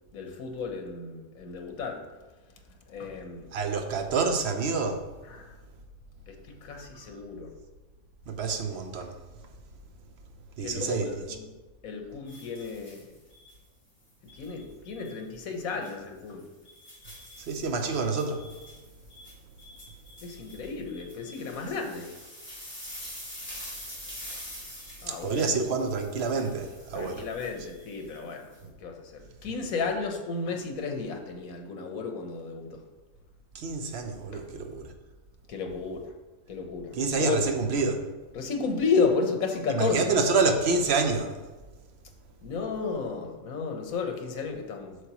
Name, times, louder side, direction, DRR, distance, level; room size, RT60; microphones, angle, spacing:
voice 1, 0.1-2.0 2.9-3.5 5.3-5.5 6.3-7.5 10.6-11.4 11.8-13.0 14.3-16.5 20.2-22.1 25.0-25.5 26.9-32.8 34.3-34.4 35.5-36.1 36.5-37.5 38.3-40.1 42.4-45.0, left 4 dB, 80° left, 1.4 m, -32 dB
voice 2, 3.5-5.1 8.3-9.2 10.6-11.2 17.4-18.5 25.1-27.3 33.5-34.9 36.9-38.0 39.7-41.4, right 4 dB, 55° right, 0.9 m, -28 dB
sound 1, 12.3-13.6 14.3-15.2 15.7-15.9 16.4-28.6, left 1 dB, 10° left, 2.4 m, -46 dB
7.9 x 6.4 x 3.0 m
omnidirectional pair, 1.5 m